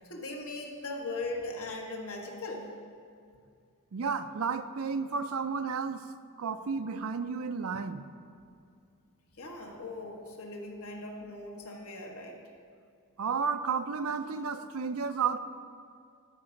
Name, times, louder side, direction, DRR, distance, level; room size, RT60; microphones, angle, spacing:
voice 1, 0.0-2.8 9.4-12.4, left 2 dB, 75° left, 1 dB, 1.4 m, -39 dB
voice 2, 3.9-6.0 6.4-8.0 13.2-15.4, right 5 dB, 75° right, 10 dB, 0.5 m, -32 dB
12.5 x 5.7 x 5.1 m, 2.3 s
head